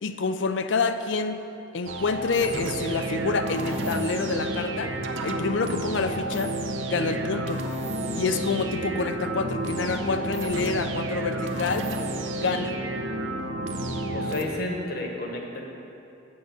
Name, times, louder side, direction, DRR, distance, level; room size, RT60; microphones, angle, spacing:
voice 1, 0.0-1.5 1.7-5.0 5.2-6.5 6.8-7.6 8.1-11.9 12.3-12.7, left 4 dB, 70° left, 10 dB, 0.5 m, -27 dB
sound 1, 1.9-14.4, right 1 dB, 80° right, 0.7 m, -30 dB
voice 2, 14.1-15.7, left 2 dB, 50° left, 1 dB, 1.2 m, -31 dB
7.8 x 6.8 x 7.1 m, 2.8 s
head